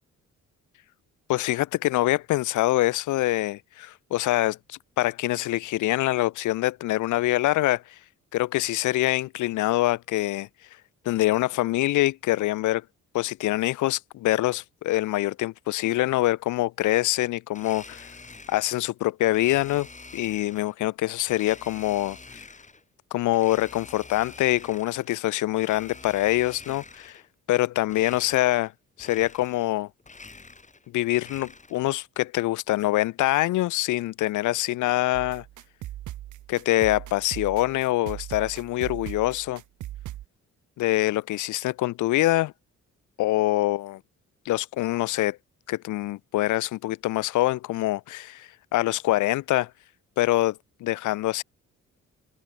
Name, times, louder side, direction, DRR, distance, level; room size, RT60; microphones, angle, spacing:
voice 1, 1.3-7.8 8.3-10.5 11.0-12.8 13.1-18.1 18.5-19.9 20.1-22.4 23.1-27.2 27.5-28.7 29.0-29.9 30.9-35.4 36.5-39.6 40.8-42.5 43.2-44.0 44.5-45.4 45.7-49.7 50.2-51.4, left 16 dB, 80° left, 0.8 m, -25 dB
Domestic sounds home sounds, 17.5-18.8 19.3-20.7 21.3-22.8 23.3-25.1 25.5-27.3 27.9-28.7 29.0-29.7 30.0-31.9, left 3 dB, 25° left, 5.1 m, -46 dB
sound 1, 35.1-40.2, right 14 dB, 80° right, 2.6 m, -39 dB
cardioid pair, 90°, 30 cm